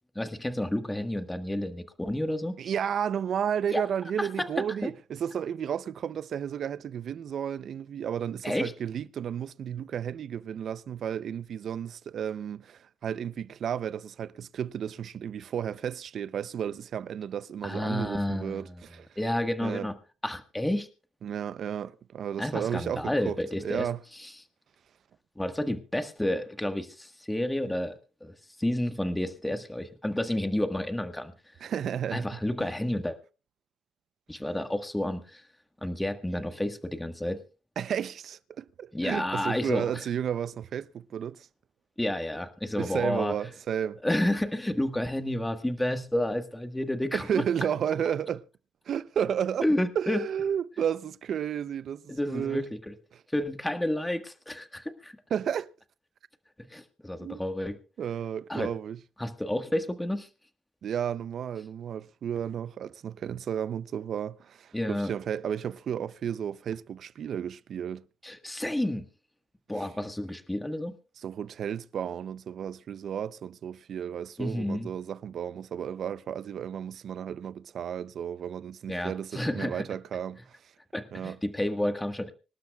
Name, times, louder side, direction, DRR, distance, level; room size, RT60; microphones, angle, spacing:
voice 1, 0.1-2.5 3.7-3.8 4.2-4.5 4.8-4.9 8.4-8.7 17.6-18.8 19.2-19.9 20.2-20.9 22.4-23.9 24.2-24.3 25.4-28.3 28.6-31.3 32.1-33.2 34.3-35.4 35.8-37.4 38.9-40.1 42.0-43.4 44.0-47.4 49.6-50.2 52.1-52.9 53.3-55.1 56.7-57.8 58.5-58.7 59.2-60.3 64.7-65.1 68.2-69.0 69.7-70.9 74.4-74.9 78.9-79.8 80.9-82.3, left 1 dB, 10° left, 1.5 m, -30 dB
voice 2, 2.6-19.1 19.6-19.9 21.2-24.0 31.6-32.4 37.8-41.5 42.8-44.0 47.1-48.4 48.9-49.7 50.0-52.6 53.1-53.2 55.3-55.7 57.2-57.4 58.0-59.0 60.8-68.0 69.8-69.9 71.2-80.6 81.1-81.4, right 8 dB, 60° right, 0.6 m, -33 dB
25.5 x 12.0 x 2.4 m
cardioid pair, 90°, 0 cm